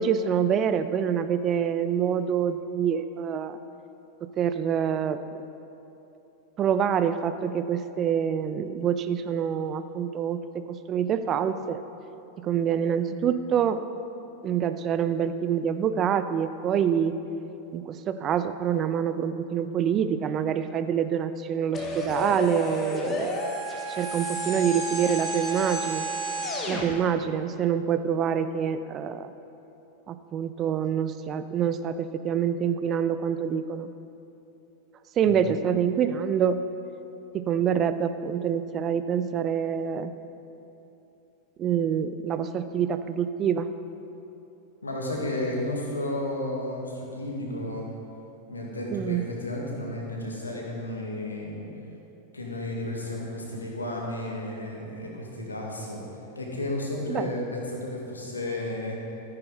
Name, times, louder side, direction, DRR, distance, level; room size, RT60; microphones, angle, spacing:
voice 1, 0.0-3.6 4.2-5.2 6.6-11.8 12.4-13.8 14.4-17.2 17.7-23.5 23.9-26.1 26.7-29.3 30.1-33.9 35.2-36.7 37.3-40.1 41.6-43.7 48.9-49.3 57.1-57.3, right 8 dB, 30° right, 11 dB, 0.5 m, -26 dB
sound 1, 21.7-26.9, right 1 dB, 20° left, 1.6 m, -31 dB
voice 2, 44.8-47.9 48.5-51.7 52.3-56.0 56.4-59.0, left 1 dB, 80° left, -1 dB, 1.9 m, -32 dB
14.0 x 9.8 x 4.0 m, 2.9 s
figure-of-eight pair, 90°, 0 cm